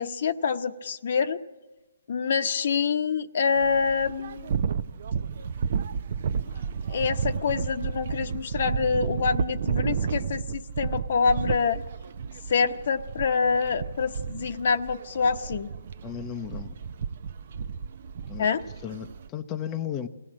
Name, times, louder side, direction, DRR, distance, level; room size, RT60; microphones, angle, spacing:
voice 1, 0.0-1.4 2.1-4.6 6.9-11.8 12.5-15.7 18.4-18.6, left 5 dB, 55° left, 8 dB, 0.9 m, -26 dB
sound 1, 3.6-19.3, right 6 dB, 50° right, 0.6 m, -32 dB
voice 2, 16.0-16.7 18.3-18.5 18.8-20.1, left 9 dB, 20° left, 5 dB, 0.7 m, -34 dB
22.5 x 17.5 x 7.5 m, 1.1 s
hypercardioid pair, 160°, 0 cm